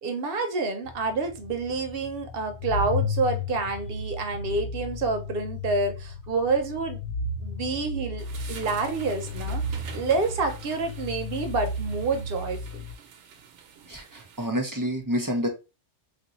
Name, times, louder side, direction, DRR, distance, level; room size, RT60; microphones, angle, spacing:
voice 1, 0.0-7.0 7.4-12.9, right 3 dB, 60° right, 0.7 m, -28 dB
sound 1, 0.8-12.9, left 2 dB, 85° left, 1.1 m, -34 dB
sound 2, 8.2-14.5, right 7 dB, 90° right, 0.9 m, -46 dB
voice 2, 13.9-15.5, equal, 30° right, 0.4 m, -28 dB
3.2 x 2.6 x 2.9 m
omnidirectional pair, 1.2 m